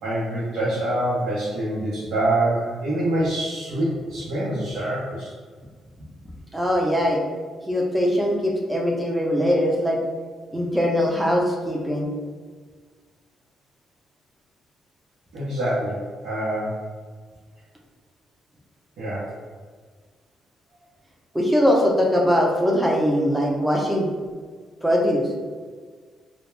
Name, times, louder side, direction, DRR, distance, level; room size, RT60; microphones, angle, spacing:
voice 1, 0.0-5.3 15.3-16.8 19.0-19.3, right 1 dB, 85° right, -10 dB, 0.6 m, -25 dB
voice 2, 6.5-7.2 7.6-10.0 10.5-12.1 21.3-24.1 24.8-25.3, equal, 5° right, -1 dB, 0.5 m, -21 dB
2.2 x 2.1 x 3.0 m, 1.5 s
cardioid pair, 90°, 0 cm